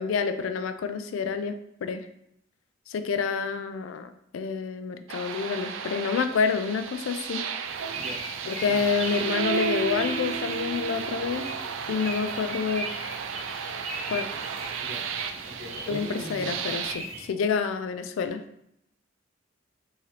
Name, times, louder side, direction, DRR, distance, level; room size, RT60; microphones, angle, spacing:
voice 1, 0.0-1.5 1.8-2.1 2.9-7.4 8.5-11.5 11.9-12.9 14.1-14.3 15.9-18.4, left 5 dB, 85° left, 10 dB, 0.3 m, -28 dB
sound 1, 5.1-16.9, right 7 dB, 70° right, 0.3 m, -33 dB
sound 2, 7.6-17.3, right 2 dB, 30° right, 0.7 m, -40 dB
voice 2, 15.4-16.5, equal, 55° right, -2 dB, 1.0 m, -40 dB
3.6 x 2.8 x 3.2 m, 0.78 s
head